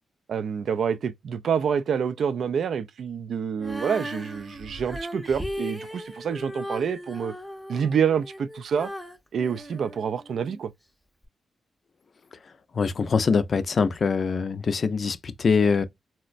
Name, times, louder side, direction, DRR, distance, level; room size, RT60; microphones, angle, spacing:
voice 1, 0.3-7.3 7.7-8.9 9.3-10.7, right 7 dB, 70° right, 0.3 m, -27 dB
Female singing, 3.6-10.6 11.2-11.3, equal, ahead, 0.6 m, -37 dB
voice 2, 12.8-15.8, left 5 dB, 50° left, 0.4 m, -23 dB
4.0 x 2.1 x 2.4 m
cardioid pair, 95°, 0 cm